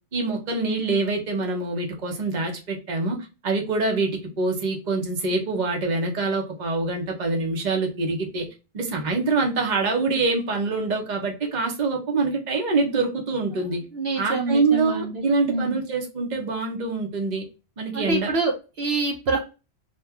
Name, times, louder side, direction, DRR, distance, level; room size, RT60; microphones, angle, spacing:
voice 1, 0.1-8.5 8.7-13.8 14.2-17.4 17.8-18.3, right 3 dB, 45° right, 1 dB, 1.0 m, -25 dB
voice 2, 13.9-15.8 17.9-19.5, right 2 dB, 70° right, 1 dB, 1.0 m, -26 dB
2.9 x 2.4 x 3.5 m, 0.30 s
omnidirectional pair, 1.1 m